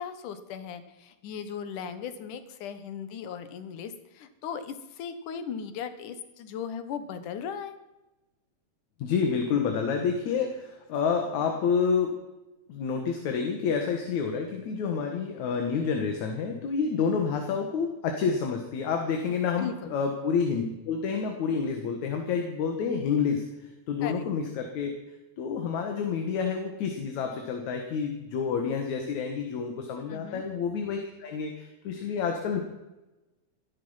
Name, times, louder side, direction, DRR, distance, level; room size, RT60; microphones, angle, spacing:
voice 1, 0.0-7.7 19.6-20.0 24.0-24.3 30.1-30.4, left 7 dB, 85° left, 11 dB, 2.8 m, -37 dB
voice 2, 9.0-12.1 12.7-23.4 23.9-24.9 25.4-32.6, left 6 dB, 70° left, 4 dB, 2.9 m, -29 dB
17.5 x 13.0 x 5.7 m, 1.0 s
omnidirectional pair, 3.5 m